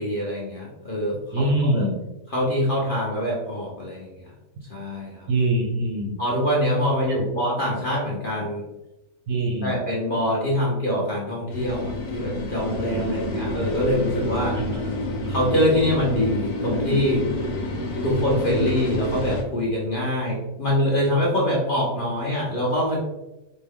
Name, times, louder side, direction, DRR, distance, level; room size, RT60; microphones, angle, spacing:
voice 1, 0.0-1.9 2.3-4.1 4.7-5.3 6.2-8.6 9.6-14.6 15.3-17.3 18.0-23.0, equal, 45° left, -4 dB, 0.7 m, -24 dB
voice 2, 1.3-2.0 5.3-6.2 9.3-9.8 13.0-13.2 14.5-14.9, right 1 dB, 65° right, 2 dB, 0.8 m, -24 dB
sound 1, 11.5-19.4, left 1 dB, 80° left, 1.2 m, -28 dB
4.3 x 2.2 x 3.4 m, 0.97 s
omnidirectional pair, 1.6 m